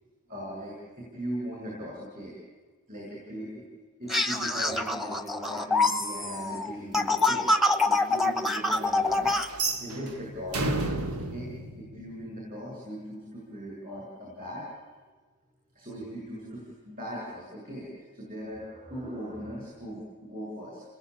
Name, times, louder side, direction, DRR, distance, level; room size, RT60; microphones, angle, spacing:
voice 1, 0.3-2.3 2.9-3.6 4.0-9.3 9.8-10.6 11.0-11.5 11.8-14.7 15.7-20.8, equal, 40° right, -3 dB, 7.9 m, -39 dB
sound 1, 4.1-9.5, left 2 dB, ahead, 1.0 m, -26 dB
sound 2, 9.5-12.6, right 2 dB, 85° right, 2.4 m, -32 dB
29.5 x 22.0 x 8.8 m, 1.4 s
head